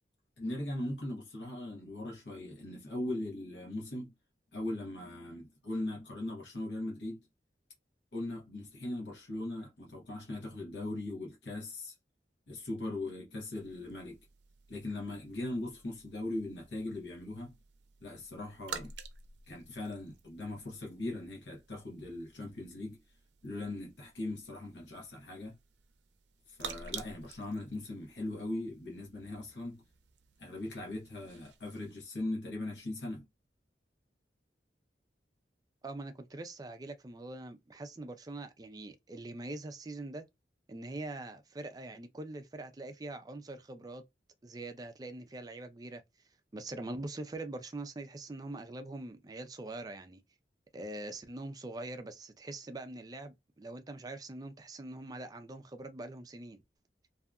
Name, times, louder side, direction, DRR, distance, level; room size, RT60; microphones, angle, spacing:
voice 1, 0.4-4.1 4.5-7.2 8.1-11.9 12.5-14.2 14.7-17.6 18.0-18.9 19.5-23.0 23.4-25.6 26.5-29.8 30.4-33.3, left 1 dB, 85° left, 1.0 m, -39 dB
sound 1, 13.5-31.9, right 6 dB, 85° right, 0.5 m, -51 dB
voice 2, 35.8-40.3 40.7-44.0 44.4-46.0 46.5-50.2 50.7-56.6, right 2 dB, 20° right, 0.4 m, -43 dB
2.7 x 2.4 x 2.2 m
head